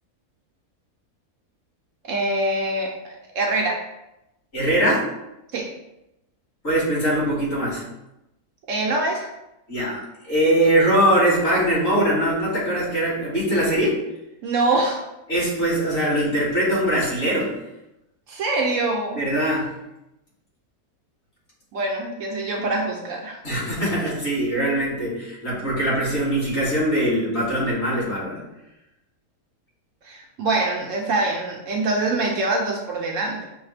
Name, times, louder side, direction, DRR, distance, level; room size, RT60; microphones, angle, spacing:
voice 1, 2.0-3.8 5.5-5.7 8.7-9.3 14.4-15.0 18.3-19.2 21.7-23.4 30.0-33.5, right 2 dB, 70° right, 0 dB, 0.9 m, -24 dB
voice 2, 4.5-5.0 6.6-7.8 9.7-10.0 10.3-14.0 15.3-17.6 19.2-19.7 23.4-28.4, right 1 dB, 45° left, -7 dB, 1.9 m, -22 dB
6.1 x 2.1 x 3.2 m, 0.91 s
omnidirectional pair, 1.5 m